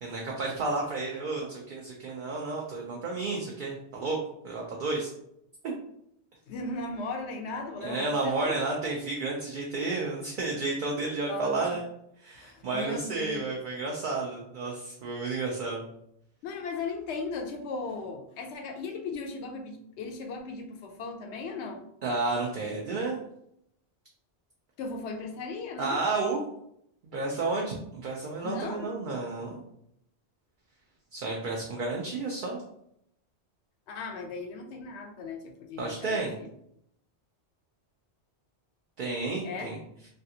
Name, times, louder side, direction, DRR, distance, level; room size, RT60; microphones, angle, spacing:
voice 1, 0.0-4.2 4.4-5.1 7.8-11.8 12.2-15.8 22.0-23.2 25.8-26.4 27.1-29.6 31.1-32.6 35.8-36.3 39.0-39.8, right 3 dB, 55° right, -1 dB, 0.6 m, -31 dB
voice 2, 6.5-8.6 11.3-11.7 12.3-13.5 16.4-21.8 24.8-26.0 28.4-28.9 33.9-36.5 39.4-39.7, left 3 dB, 80° left, 3 dB, 0.9 m, -37 dB
3.2 x 2.4 x 2.7 m, 0.74 s
omnidirectional pair, 1.1 m